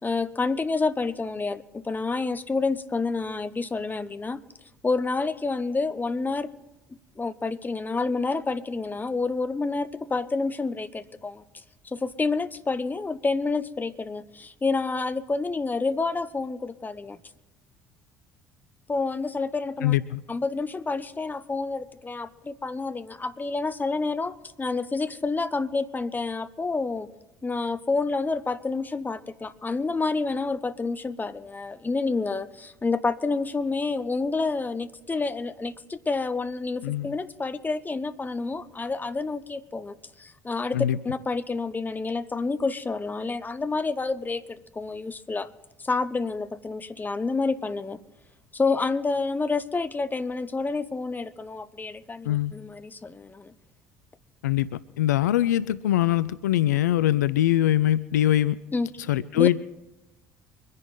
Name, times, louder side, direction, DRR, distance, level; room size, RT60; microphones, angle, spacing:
voice 1, 0.0-4.4 4.8-6.5 7.2-11.4 11.8-17.2 18.9-19.9 20.3-27.1 27.4-40.8 41.0-45.5 45.8-48.0 48.5-53.5 58.7-58.9 59.4-59.5, left 3 dB, 20° left, 12 dB, 1.0 m, -28 dB
voice 2, 19.8-20.2 36.8-37.1 40.7-41.0 52.2-52.5 54.4-58.6 59.1-59.6, left 13 dB, 80° left, 18 dB, 0.4 m, -23 dB
24.5 x 10.5 x 3.8 m, 1.0 s
figure-of-eight pair, 55°, 9 cm